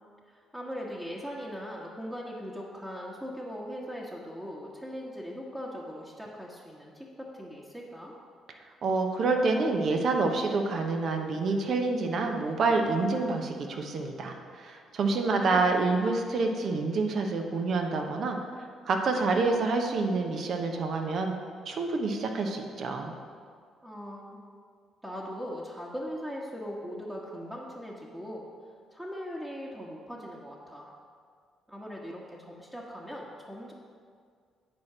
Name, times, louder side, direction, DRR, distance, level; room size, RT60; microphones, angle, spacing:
voice 1, 0.3-8.1 15.1-15.7 23.8-24.4 25.0-28.4 28.9-30.9 31.7-33.7, equal, 10° right, -5 dB, 1.3 m, -40 dB
voice 2, 8.8-18.4 18.9-21.3 21.7-23.1, right 3 dB, 60° right, 4 dB, 1.0 m, -27 dB
9.4 x 4.5 x 6.0 m, 2.1 s
supercardioid pair, 55°, 0 cm